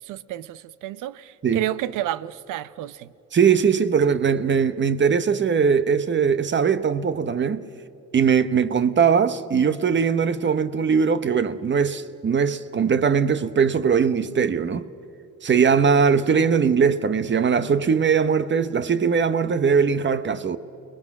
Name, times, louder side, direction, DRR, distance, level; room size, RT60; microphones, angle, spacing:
voice 1, 0.0-3.1, right 13 dB, 90° right, 0.7 m, -30 dB
voice 2, 3.3-7.6 8.1-14.9 15.4-20.6, right 6 dB, 40° right, 1.0 m, -20 dB
29.5 x 20.5 x 6.0 m
cardioid pair, 90°, 30 cm